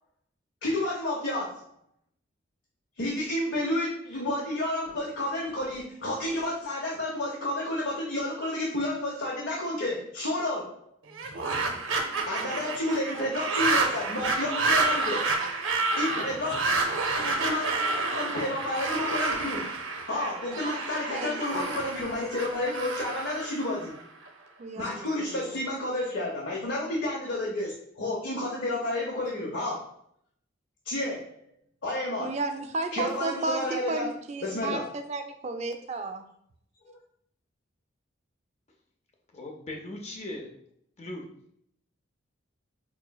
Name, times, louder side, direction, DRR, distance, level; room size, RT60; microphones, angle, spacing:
voice 1, 0.6-1.7 3.0-10.8 12.3-15.2 16.0-16.6 17.1-17.7 18.0-19.7 20.1-23.9 24.7-29.8 30.8-31.5 31.8-32.4 32.9-34.1 34.4-34.8 36.9-37.0, left 1 dB, 75° left, -4 dB, 0.7 m, -30 dB
sound 1, 11.1-24.3, right 3 dB, 80° right, 0.5 m, -29 dB
voice 2, 21.1-21.8 24.6-25.4 32.2-36.2, right 3 dB, 35° right, 6 dB, 0.3 m, -33 dB
voice 3, 39.3-40.5 41.0-41.2, left 1 dB, 35° left, 2 dB, 0.5 m, -38 dB
4.5 x 3.0 x 2.2 m, 0.70 s
head